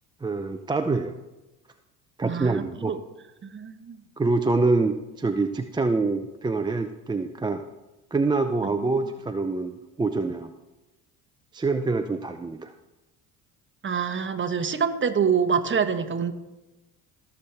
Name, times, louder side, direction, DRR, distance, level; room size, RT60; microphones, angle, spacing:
voice 1, 0.2-1.2 2.2-2.9 4.2-7.6 8.1-10.5 11.5-12.7, right 3 dB, 10° right, 7 dB, 0.5 m, -25 dB
voice 2, 2.2-3.0 3.5-4.0 13.8-16.3, right 6 dB, 25° right, 9 dB, 1.1 m, -26 dB
17.0 x 7.1 x 3.4 m, 1.0 s
hypercardioid pair, 75°, 43 cm